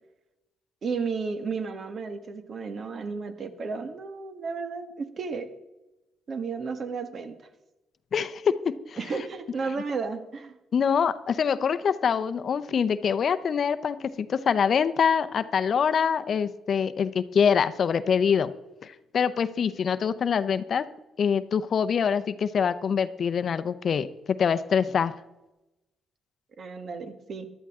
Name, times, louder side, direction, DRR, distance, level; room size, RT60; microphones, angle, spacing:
voice 1, 0.8-5.5 6.3-7.5 9.0-10.5 26.6-27.5, right 4 dB, 50° right, 9 dB, 1.6 m, -33 dB
voice 2, 8.1-9.0 10.7-18.5 18.8-20.9 21.2-25.1, left 7 dB, 55° left, 13 dB, 0.6 m, -25 dB
14.0 x 12.0 x 3.7 m, 0.99 s
cardioid pair, 90°, 0 cm